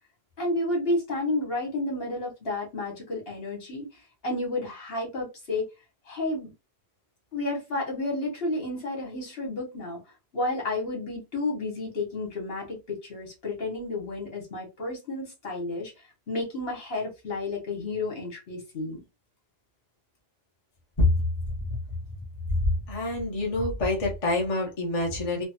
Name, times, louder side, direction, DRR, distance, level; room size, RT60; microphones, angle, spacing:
voice 1, 0.4-3.9 4.2-5.7 6.1-6.5 7.3-10.0 10.3-15.9 16.3-19.0, left 2 dB, 70° left, 1.5 m, -31 dB
voice 2, 22.9-25.4, left 2 dB, 35° left, 0.8 m, -26 dB
3.3 x 2.0 x 2.8 m
omnidirectional pair, 1.0 m